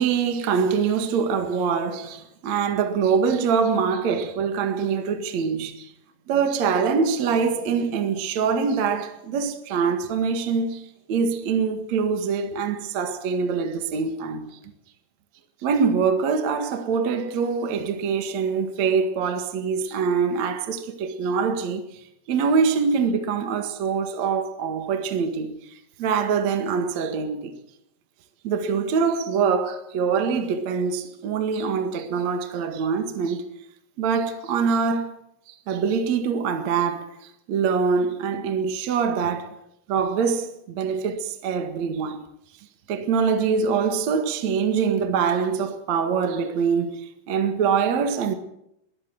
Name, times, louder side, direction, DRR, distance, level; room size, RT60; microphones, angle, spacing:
voice 1, 0.0-5.9 6.3-14.5 15.6-21.8 22.3-25.5 26.0-27.5 28.4-33.4 34.0-35.1 35.7-37.1 37.5-39.5 39.9-42.2 42.9-48.3, right 6 dB, 50° right, 2.3 m, -24 dB
22.5 x 17.5 x 7.7 m
omnidirectional pair, 5.4 m